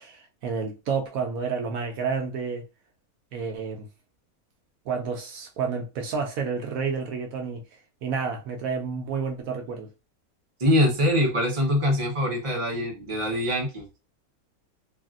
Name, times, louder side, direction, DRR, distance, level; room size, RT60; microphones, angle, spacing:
voice 1, 0.0-2.6 3.3-3.9 4.9-7.6 8.0-9.9, right 5 dB, 75° right, 1.0 m, -30 dB
voice 2, 10.6-13.9, left 1 dB, 25° right, 0.8 m, -23 dB
3.3 x 2.4 x 2.4 m
omnidirectional pair, 1.6 m